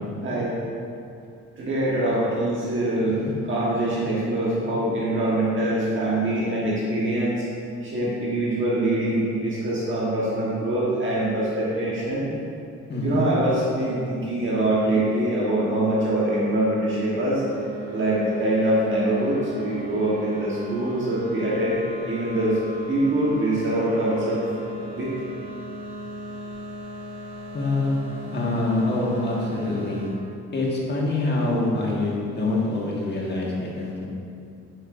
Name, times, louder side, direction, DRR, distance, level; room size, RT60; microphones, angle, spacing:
voice 1, 0.2-0.6 1.6-3.2 3.5-7.4 7.8-12.3 13.0-17.4 17.9-22.6 22.9-24.4 24.9-25.1, right 1 dB, 40° right, -7 dB, 1.4 m, -24 dB
voice 2, 12.9-13.2 27.5-28.0 28.3-30.0 30.5-34.0, left 2 dB, 35° left, -4 dB, 1.6 m, -25 dB
sound 1, 17.4-30.1, right 1 dB, 70° right, 1.5 m, -37 dB
9.0 x 5.2 x 2.6 m, 2.5 s
cardioid pair, 90°, 30 cm